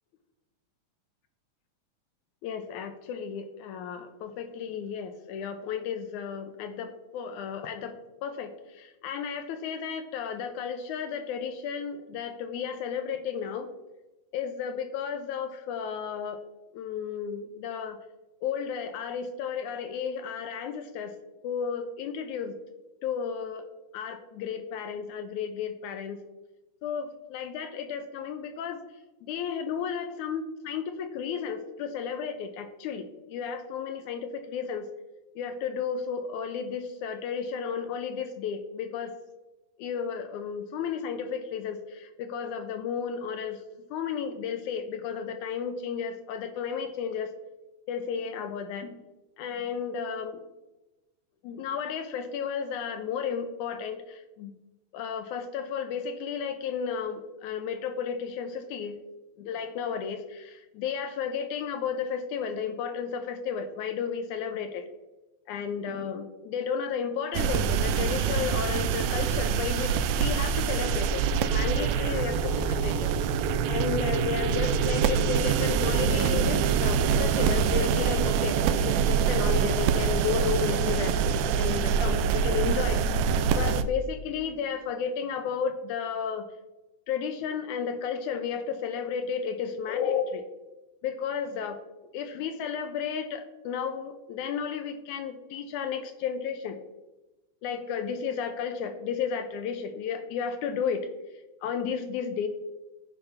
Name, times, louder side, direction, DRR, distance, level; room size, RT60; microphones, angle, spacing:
voice 1, 2.4-7.9 8.2-13.7 14.3-16.4 16.7-18.0 18.4-21.1 21.4-22.6 23.0-23.7 23.9-26.2 26.8-28.8 29.3-34.9 35.4-39.2 39.8-43.6 43.9-47.3 47.9-49.0 49.4-50.4 51.4-54.5 54.9-59.0 59.4-64.8 65.5-71.2 71.5-73.1 73.7-78.6 78.8-81.2 81.6-83.0 83.5-86.4 87.1-90.4 91.0-91.8 92.1-96.8 97.6-101.1 101.6-102.5, left 7 dB, 80° left, 8 dB, 2.1 m, -33 dB
sound 1, 67.3-83.8, right 7 dB, 80° right, 1.7 m, -25 dB
15.0 x 5.6 x 3.4 m, 1.1 s
omnidirectional pair, 3.5 m